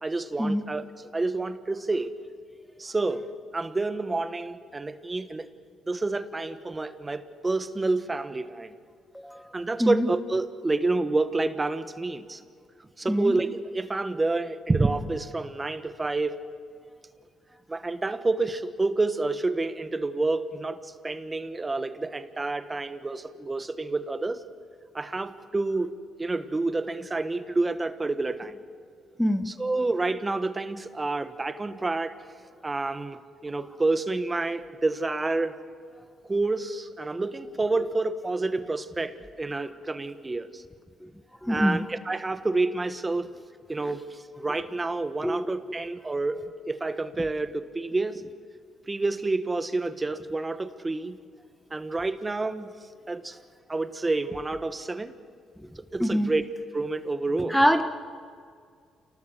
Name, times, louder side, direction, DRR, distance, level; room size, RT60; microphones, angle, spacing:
voice 1, 0.0-2.1 2.8-5.5 5.9-8.8 9.5-12.4 13.0-16.4 17.7-24.4 24.9-28.6 29.5-32.1 32.6-35.5 36.3-40.6 41.5-43.3 43.7-48.3 48.9-51.2 51.7-52.7 53.1-53.4 53.7-55.1 55.8-56.4 56.7-57.6, right 3 dB, 20° right, 11 dB, 1.4 m, -29 dB
voice 2, 9.1-9.5 9.8-10.1 13.1-13.3 29.2-29.5 41.4-41.8 45.2-45.5 56.0-56.3 57.5-57.8, equal, ahead, 8 dB, 1.1 m, -24 dB
28.5 x 19.0 x 8.1 m, 2.2 s
cardioid pair, 90°, 0 cm